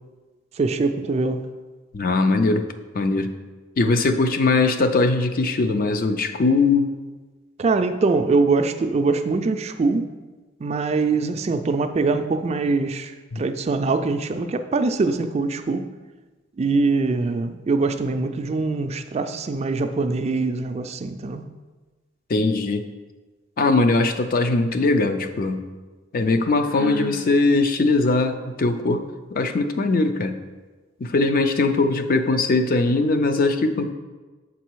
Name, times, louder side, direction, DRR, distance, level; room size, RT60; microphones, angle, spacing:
voice 1, 0.6-1.5 7.6-10.1 10.6-15.9 16.6-21.4, right 3 dB, 35° right, 8 dB, 0.3 m, -23 dB
voice 2, 1.9-2.6 2.9-3.3 3.8-6.9 13.3-13.4 22.3-22.8 23.6-25.6 26.1-29.0 29.3-30.4 31.0-33.9, left 3 dB, 45° left, 8 dB, 0.5 m, -20 dB
Sigh, 26.6-27.2, right 2 dB, 80° left, 1.8 m, -33 dB
7.3 x 4.0 x 4.6 m, 1.3 s
head